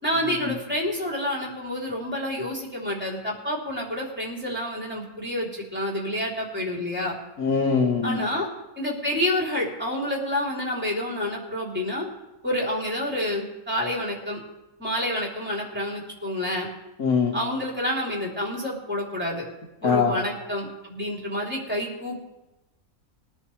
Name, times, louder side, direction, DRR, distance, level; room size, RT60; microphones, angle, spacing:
voice 1, 0.0-7.1 8.0-8.5 8.8-12.1 12.4-14.4 14.8-16.7 17.3-19.4 19.8-22.2, left 1 dB, 5° right, -3 dB, 3.4 m, -28 dB
voice 2, 7.4-8.2 17.0-17.3 19.8-20.1, left 5 dB, 80° left, 0 dB, 2.0 m, -22 dB
22.0 x 10.5 x 3.3 m, 0.98 s
omnidirectional pair, 1.5 m